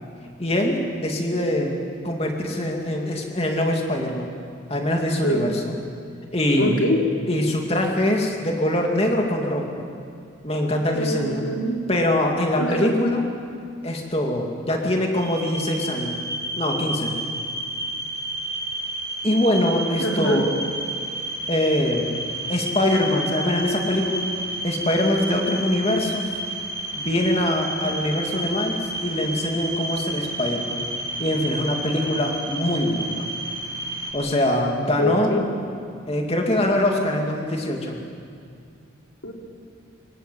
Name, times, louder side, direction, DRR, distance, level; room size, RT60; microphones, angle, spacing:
voice 1, 0.4-1.8 2.0-4.4 4.7-5.8 6.3-6.8 7.3-9.9 10.4-11.5 11.9-13.3 13.8-16.2 16.6-17.1 19.2-20.5 21.5-22.1 22.5-24.3 24.6-26.3 26.9-30.9 31.2-33.3 34.1-35.3 36.1-38.0, left 1 dB, 30° left, 1 dB, 2.7 m, -23 dB
voice 2, 6.6-7.0 10.9-11.8 12.6-12.9 20.0-20.4 35.0-35.4 39.2-39.3, equal, 80° left, 0 dB, 3.6 m, -24 dB
sound 1, 15.1-34.1, right 1 dB, 15° right, 3.8 m, -31 dB
25.0 x 20.0 x 7.8 m, 2.3 s
head